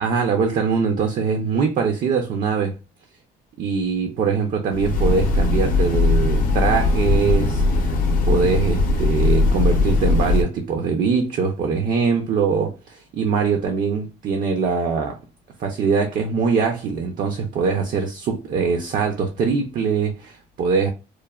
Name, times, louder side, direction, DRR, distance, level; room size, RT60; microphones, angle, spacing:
voice 1, 0.0-2.7 3.6-8.0 8.2-15.2 15.6-20.9, right 5 dB, 55° right, 0.5 m, -22 dB
Train, 4.7-10.4, left 3 dB, 55° left, 0.6 m, -19 dB
3.1 x 2.1 x 2.3 m
cardioid pair, 110°, 17 cm